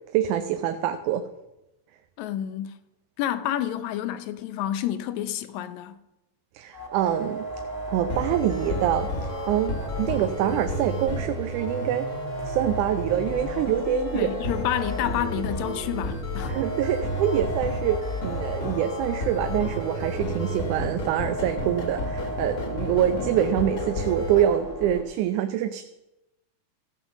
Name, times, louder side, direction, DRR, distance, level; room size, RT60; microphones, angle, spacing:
voice 1, 0.1-1.2 6.5-7.4 7.9-12.1 12.4-14.3 16.5-25.8, right 10 dB, 90° right, 2.2 m, -25 dB
voice 2, 2.2-2.8 3.2-6.0 14.1-16.6, left 11 dB, 75° left, 1.9 m, -29 dB
sound 1, 6.7-25.0, equal, 10° right, 1.3 m, -35 dB
sound 2, 8.1-24.4, left 1 dB, 40° left, 1.2 m, -32 dB
15.5 x 5.7 x 7.2 m
omnidirectional pair, 3.5 m